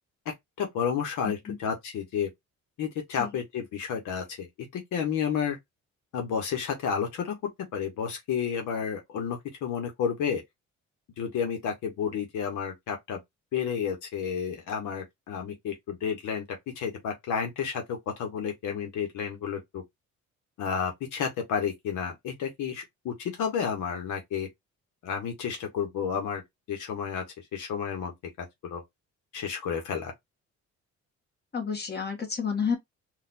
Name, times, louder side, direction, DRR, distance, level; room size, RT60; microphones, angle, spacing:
voice 1, 0.2-2.3 2.8-5.6 6.1-7.3 7.7-10.4 11.2-13.2 13.5-16.4 16.8-19.8 20.6-24.5 25.0-26.4 26.7-27.2 27.5-28.8 29.3-30.1, left 7 dB, 80° left, 1.1 m, -31 dB
voice 2, 31.5-32.8, left 6 dB, 35° left, 1.5 m, -30 dB
3.9 x 2.5 x 2.6 m
cardioid pair, 90°, 30 cm